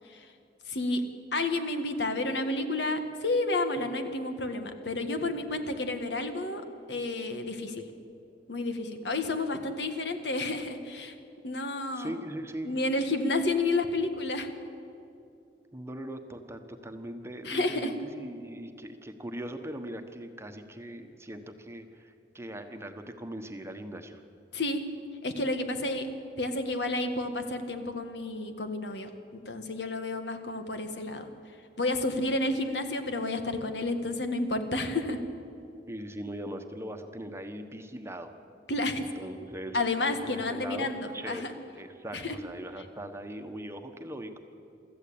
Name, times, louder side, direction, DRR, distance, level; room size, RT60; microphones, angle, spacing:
voice 1, 0.7-1.0 1.3-7.8 8.5-11.1 11.4-12.2 12.6-14.5 17.5-17.9 24.5-24.8 25.2-26.1 26.4-31.2 31.8-35.2 38.7-39.1 39.7-41.0 41.3-41.5 42.1-42.4, left 2 dB, 70° left, 7 dB, 1.7 m, -30 dB
voice 2, 11.9-12.8 15.7-24.2 35.9-38.3 39.0-39.8 40.2-41.5 41.7-44.4, right 1 dB, 15° right, 6 dB, 1.2 m, -40 dB
24.5 x 14.0 x 8.7 m, 2.6 s
head